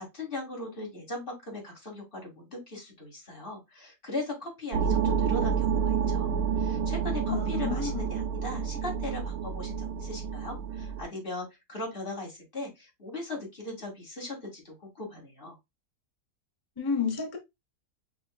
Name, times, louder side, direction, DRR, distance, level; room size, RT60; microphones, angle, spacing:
voice 1, 0.0-15.6, left 2 dB, 35° left, 2.3 m, -39 dB
sound 1, 4.7-11.0, right 7 dB, 75° right, 1.0 m, -29 dB
voice 2, 7.3-8.0 16.8-17.4, left 5 dB, 20° left, 0.8 m, -30 dB
6.1 x 3.0 x 2.2 m
omnidirectional pair, 1.7 m